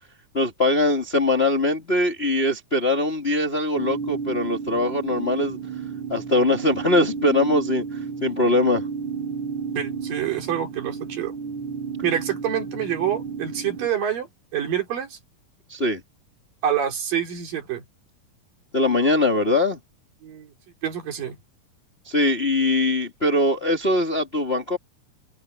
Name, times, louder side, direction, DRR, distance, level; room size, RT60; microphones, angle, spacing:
voice 1, 0.3-5.6 6.1-8.8 15.7-16.0 18.7-19.8 22.1-24.8, left 2 dB, 20° left, 2.2 m, -22 dB
sound 1, 3.8-13.9, right 6 dB, 50° right, 2.2 m, -32 dB
voice 2, 9.8-11.3 12.0-15.2 16.6-17.8 20.2-20.5 20.8-21.4, right 9 dB, 80° right, 4.9 m, -27 dB
omnidirectional pair, 3.9 m